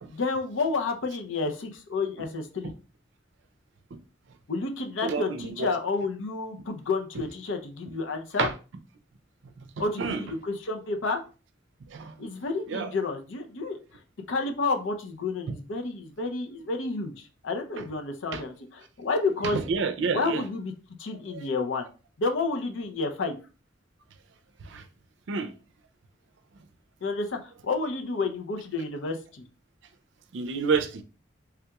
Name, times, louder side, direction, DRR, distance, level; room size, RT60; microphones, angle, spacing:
voice 1, 0.1-2.7 4.5-8.5 9.8-11.2 12.2-13.8 14.3-19.6 20.1-20.7 21.0-21.9 22.2-23.4 27.0-29.4, left 3 dB, 90° left, 0.6 m, -30 dB
voice 2, 5.0-5.7 8.4-8.5 9.6-9.7 10.0-10.2 11.9-12.1 12.7-12.9 17.8-17.9 18.3-18.4 19.5-20.4 21.3-21.4 24.6-24.8 25.3-25.5 30.3-31.0, right 5 dB, 75° right, 0.4 m, -29 dB
3.5 x 2.9 x 2.3 m
head